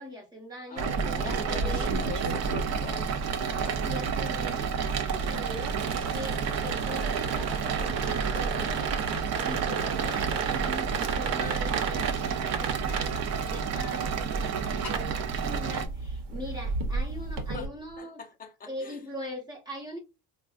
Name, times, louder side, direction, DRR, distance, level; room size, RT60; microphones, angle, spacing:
voice 1, 0.0-0.9 1.1-1.9 3.1-18.2 18.7-20.0, equal, 10° right, 1.2 m, -41 dB
voice 2, 0.7-3.9 17.5-17.7 18.0-19.0, left 5 dB, 20° left, 0.5 m, -42 dB
sound 1, 0.8-15.9, right 7 dB, 40° right, 0.5 m, -31 dB
sound 2, 0.8-17.7, right 4 dB, 70° right, 1.1 m, -34 dB
sound 3, 13.0-18.0, left 3 dB, 40° left, 1.7 m, -51 dB
4.5 x 2.3 x 2.4 m
cardioid pair, 160°, 43 cm